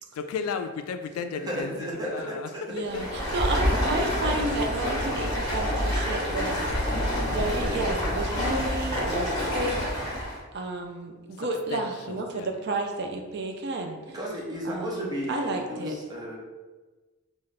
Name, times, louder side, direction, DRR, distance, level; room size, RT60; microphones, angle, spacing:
voice 1, 0.1-2.5 2.8-3.4 6.6-7.6 11.3-12.6, left 5 dB, 75° left, 8 dB, 0.3 m, -36 dB
voice 2, 1.5-2.6 14.1-16.4, equal, 20° right, -4 dB, 0.7 m, -33 dB
voice 3, 2.7-6.7 7.3-14.2 14.6-16.0, right 2 dB, 50° right, 3 dB, 0.4 m, -32 dB
Stream, 2.8-10.4, equal, 15° left, 1.0 m, -27 dB
3.1 x 2.4 x 4.0 m, 1.2 s
head